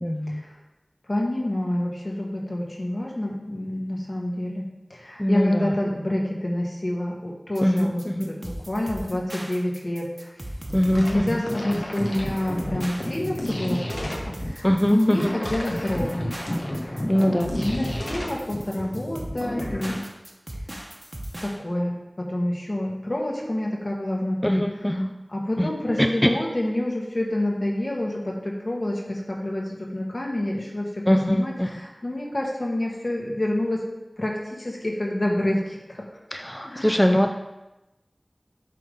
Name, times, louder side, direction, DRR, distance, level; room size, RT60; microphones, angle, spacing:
voice 1, 0.0-0.4 5.2-5.7 7.6-8.3 10.7-11.4 14.6-15.4 17.1-17.5 24.4-25.1 25.6-25.7 26.0-26.3 31.1-31.7 36.3-37.3, equal, 10° left, 4 dB, 0.4 m, -22 dB
voice 2, 1.1-10.3 10.9-20.0 21.4-24.6 25.0-25.1 25.3-33.9 34.2-36.0 36.6-37.0, left 1 dB, 60° left, -2 dB, 1.4 m, -28 dB
sound 1, 7.5-21.6, right 1 dB, 35° right, 1.0 m, -37 dB
sound 2, 10.6-20.0, left 1 dB, 75° left, 1.1 m, -32 dB
7.5 x 3.6 x 5.3 m, 0.99 s
wide cardioid pair, 45°, 0 cm